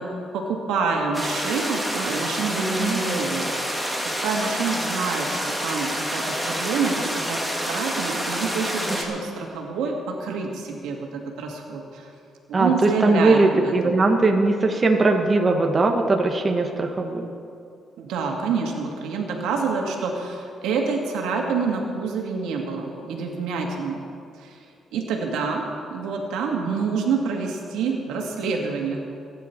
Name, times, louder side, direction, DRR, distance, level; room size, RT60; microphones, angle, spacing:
voice 1, 0.0-12.1 12.5-14.0 18.0-24.0 24.3-24.6 24.9-29.0, right 4 dB, 90° right, 1 dB, 2.0 m, -27 dB
sound 1, 1.1-9.0, equal, 5° right, 2.3 m, -28 dB
voice 2, 12.5-17.3, right 3 dB, 30° right, 3 dB, 1.3 m, -20 dB
22.5 x 10.0 x 4.6 m, 2.5 s
cardioid pair, 90°, 0 cm